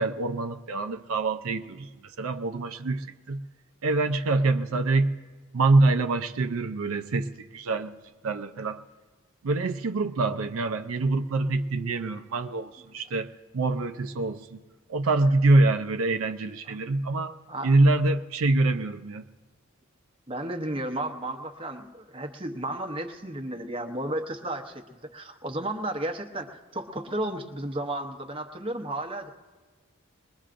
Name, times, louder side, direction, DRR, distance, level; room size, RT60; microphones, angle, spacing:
voice 1, 0.0-3.4 3.8-5.1 5.5-7.9 8.2-8.8 9.4-14.6 14.9-17.3 17.6-19.2, right 2 dB, 85° right, 8 dB, 0.5 m, -25 dB
voice 2, 20.3-29.3, right 1 dB, 25° right, 4 dB, 0.8 m, -33 dB
21.0 x 21.0 x 2.5 m, 1.3 s
head